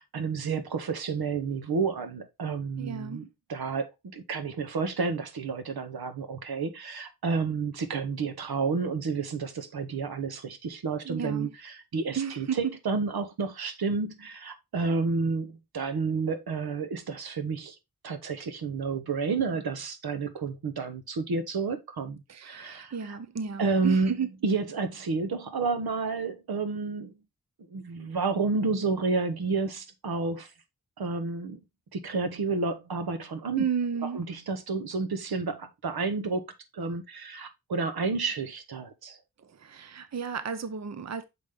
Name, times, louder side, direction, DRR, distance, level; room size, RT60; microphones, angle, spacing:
voice 1, 0.0-17.8 18.0-23.2 23.6-24.1 24.4-27.1 27.7-30.5 31.0-31.6 31.9-33.6 34.1-36.4 36.7-39.2, right 4 dB, 80° right, 1.0 m, -30 dB
voice 2, 2.8-3.3 11.0-11.5 12.2-12.6 22.3-24.3 33.6-34.2 39.4-41.2, right 6 dB, 45° right, 0.7 m, -33 dB
6.2 x 5.1 x 3.5 m
wide cardioid pair, 90°, 37 cm